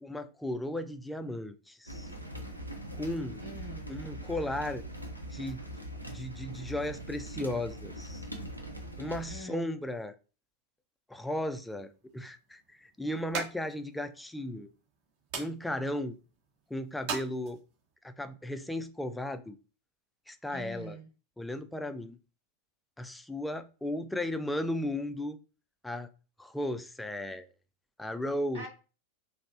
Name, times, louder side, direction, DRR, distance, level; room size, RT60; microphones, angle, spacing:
voice 1, 0.0-2.1 3.0-3.4 3.9-4.8 5.3-5.6 6.1-8.2 9.0-10.2 11.1-14.7 15.4-16.2 16.7-17.6 18.0-19.6 20.3-21.0 21.4-22.2 23.0-25.4 25.8-26.1 26.4-27.5 28.0-28.7, left 1 dB, 5° left, 0.3 m, -35 dB
sound 1, 1.9-9.4, right 1 dB, 85° right, 0.6 m, -42 dB
voice 2, 3.4-4.0 9.3-9.7 20.5-21.1 28.5-28.7, equal, 70° right, 1.5 m, -44 dB
sound 2, 11.6-17.9, right 5 dB, 50° right, 1.3 m, -43 dB
5.1 x 2.1 x 2.6 m
figure-of-eight pair, 90°, 0 cm